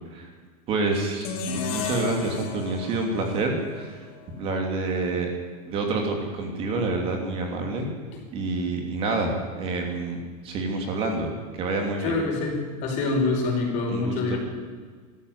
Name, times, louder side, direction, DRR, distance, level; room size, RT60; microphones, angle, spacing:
voice 1, 0.7-4.1 4.4-5.3 5.6-7.9 8.3-10.2 10.4-12.2 13.9-14.4, right 3 dB, 30° right, 2 dB, 3.0 m, -28 dB
sound 1, 1.2-4.4, left 6 dB, 65° left, 3.7 m, -34 dB
voice 2, 12.0-14.4, left 3 dB, 40° left, 2 dB, 5.3 m, -26 dB
19.5 x 14.0 x 9.8 m, 1.5 s
supercardioid pair, 175°, 20 cm